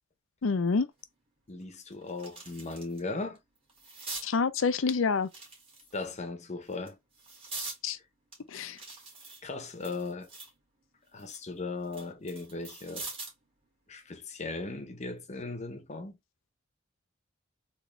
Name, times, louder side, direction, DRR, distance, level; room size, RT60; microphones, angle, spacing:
voice 1, 0.4-0.9 4.2-5.3 7.8-8.0 8.5-8.8, left 4 dB, 75° left, 0.5 m, -27 dB
sound 1, 1.0-1.1 1.6-3.0 3.3-4.3 5.2-6.1 6.7-7.8 8.3-10.6 11.0-13.4 14.8-15.0, right 3 dB, 30° right, 1.8 m, -43 dB
voice 2, 1.5-3.4 5.9-7.0 9.4-10.3 11.1-13.1 13.9-16.2, left 3 dB, 35° left, 0.8 m, -37 dB
3.6 x 3.0 x 3.1 m
head